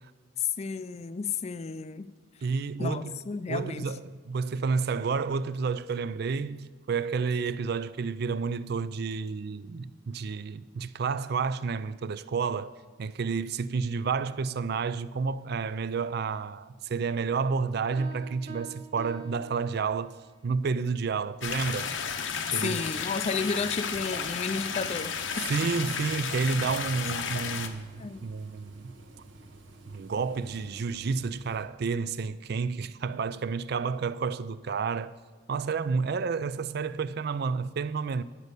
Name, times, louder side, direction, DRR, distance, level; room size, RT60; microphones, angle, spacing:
voice 1, 0.4-2.1 2.8-3.9 22.6-25.5 28.0-28.2, left 5 dB, 35° left, 0.4 m, -32 dB
voice 2, 2.4-3.2 3.5-12.7 13.0-20.1 20.4-21.9 22.5-22.8 25.5-28.9 29.9-35.1 35.5-38.2, right 5 dB, 60° right, 0.4 m, -30 dB
Piano, 18.0-20.3, right 5 dB, 40° right, 1.2 m, -45 dB
sound 1, 21.4-27.7, left 6 dB, 85° left, 0.9 m, -33 dB
sound 2, 23.3-31.7, right 2 dB, 85° right, 1.1 m, -51 dB
11.0 x 5.3 x 8.1 m
head